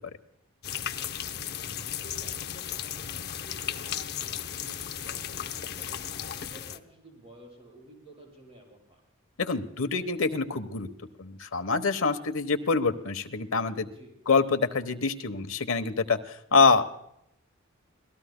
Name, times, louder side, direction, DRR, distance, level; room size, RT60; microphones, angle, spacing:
sound 1, 0.6-6.8, left 9 dB, 50° left, 0.7 m, -35 dB
voice 1, 1.2-1.7 2.0-9.0 13.8-14.2, right 1 dB, 30° right, 0 dB, 7.2 m, -52 dB
voice 2, 9.4-10.9 11.2-13.9 14.3-16.8, left 4 dB, 80° left, 8 dB, 1.0 m, -25 dB
27.5 x 18.5 x 2.2 m, 0.78 s
head